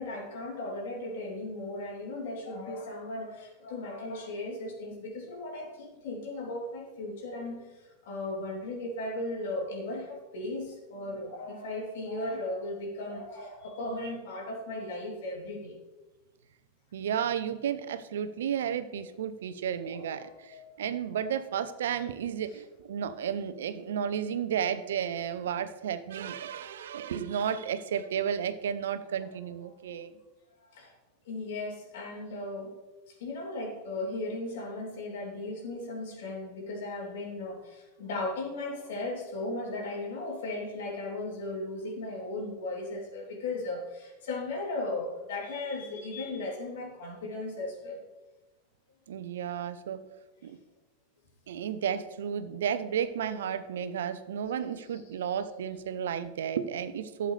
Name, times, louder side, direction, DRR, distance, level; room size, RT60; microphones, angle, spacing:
voice 1, 0.0-15.8 19.9-20.7 30.7-30.9 31.2-32.8 33.1-48.0 54.9-55.3, left 2 dB, 65° left, -2 dB, 3.2 m, -37 dB
voice 2, 16.9-30.1 49.1-50.0 50.4-50.6 51.5-57.3, right 8 dB, 75° right, 13 dB, 0.7 m, -33 dB
12.0 x 7.9 x 3.3 m, 1.2 s
hypercardioid pair, 90°, 0 cm